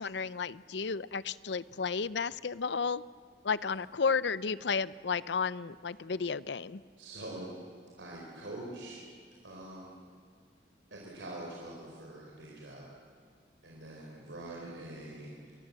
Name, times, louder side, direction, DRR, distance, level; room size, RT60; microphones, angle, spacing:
voice 1, 0.0-3.0 3.4-6.8, left 5 dB, 75° left, 17 dB, 0.6 m, -32 dB
voice 2, 7.0-7.5 8.0-9.0 9.4-9.9 10.9-12.9 13.6-15.5, right 1 dB, 90° right, -3 dB, 4.6 m, -44 dB
27.0 x 21.5 x 7.6 m, 2.2 s
head